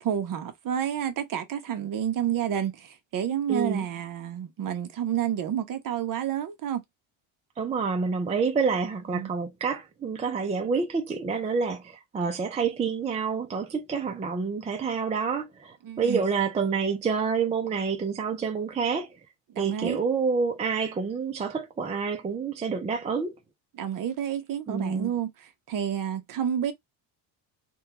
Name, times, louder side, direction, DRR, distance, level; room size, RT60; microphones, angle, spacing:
voice 1, 0.0-6.8 9.1-9.3 15.8-16.2 19.5-20.0 23.7-26.7, right 9 dB, 40° right, 0.8 m, -30 dB
voice 2, 3.5-3.9 7.6-19.2 19.6-23.4 24.7-25.1, right 5 dB, 15° right, 0.3 m, -28 dB
3.5 x 2.3 x 2.7 m
cardioid pair, 135°, 49 cm